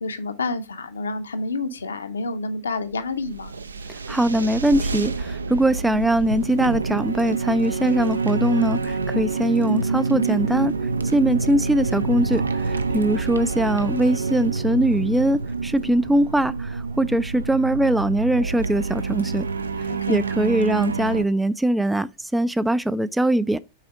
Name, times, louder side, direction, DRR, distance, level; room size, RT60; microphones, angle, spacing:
voice 1, 0.0-3.5 19.9-20.2, left 3 dB, 70° left, 0.8 m, -29 dB
sound 1, 2.9-21.2, right 4 dB, 75° right, 0.5 m, -27 dB
voice 2, 4.1-10.7 11.1-19.5 20.1-23.6, right 1 dB, 5° right, 0.3 m, -21 dB
5.7 x 4.2 x 4.9 m
figure-of-eight pair, 90°, 0 cm